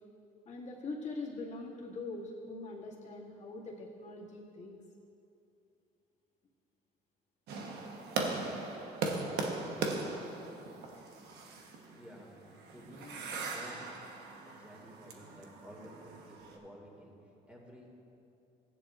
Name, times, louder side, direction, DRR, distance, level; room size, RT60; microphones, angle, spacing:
voice 1, 0.5-4.8, left 3 dB, 45° left, -5 dB, 2.0 m, -42 dB
sound 1, 7.5-16.6, right 3 dB, 75° right, 1.1 m, -39 dB
voice 2, 11.9-14.0 14.3-18.0, equal, 5° right, -2 dB, 2.1 m, -53 dB
15.5 x 10.0 x 2.5 m, 2.8 s
cardioid pair, 110°, 17 cm